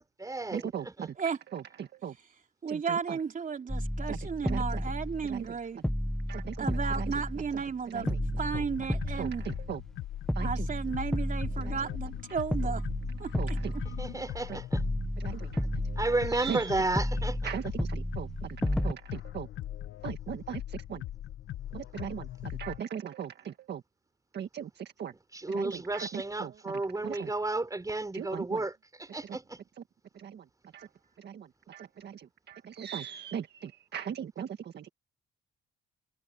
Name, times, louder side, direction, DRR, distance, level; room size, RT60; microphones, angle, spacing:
voice 1, 0.0-1.1 13.9-14.8 16.0-17.5 25.1-29.6, right 2 dB, 15° right, 5.3 m, -33 dB
voice 2, 0.5-1.1 1.5-2.1 2.7-3.0 4.1-4.2 4.4-4.8 5.3-5.5 6.3-6.6 7.0-7.1 9.2-9.8 10.3-10.5 13.4-13.7 14.5-14.6 15.2-15.5 16.3-16.7 17.4-17.6 17.9-19.5 20.0-21.0 21.7-23.8 24.3-25.1 25.5-26.5 27.0-27.3 28.1-28.6 30.2-30.4 30.7-30.9 31.2-34.5 34.7-34.9, right 8 dB, 60° right, 1.8 m, -38 dB
voice 3, 2.6-5.8 6.6-8.0 8.4-9.5 10.4-12.8 13.2-13.8, right 6 dB, 40° right, 3.6 m, -34 dB
sound 1, 3.7-5.5 5.8-7.8 8.1-9.9 10.3-12.2 12.5-14.4 14.7-16.6 17.0-18.9, equal, 5° left, 1.0 m, -33 dB
sound 2, 7.9-22.8, left 12 dB, 75° left, 1.3 m, -40 dB
cardioid pair, 90°, 20 cm